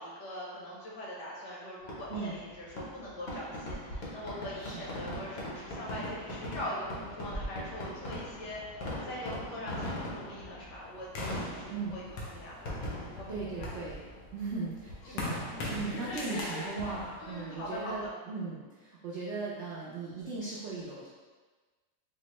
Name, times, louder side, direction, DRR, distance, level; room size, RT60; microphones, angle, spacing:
voice 1, 0.0-13.8 15.1-15.2 15.5-15.7 17.2-18.1, left 1 dB, 70° left, -5 dB, 1.5 m, -42 dB
Fireworks, 1.8-15.4, left 1 dB, 50° left, 0.8 m, -41 dB
voice 2, 4.6-4.9 11.7-11.9 13.3-14.0 14.3-21.1, right 4 dB, 75° right, -7 dB, 0.6 m, -38 dB
sound 1, 11.1-13.0 13.4-18.1, left 2 dB, 90° left, 1.4 m, -40 dB
4.4 x 2.1 x 2.9 m, 1.3 s
omnidirectional pair, 1.9 m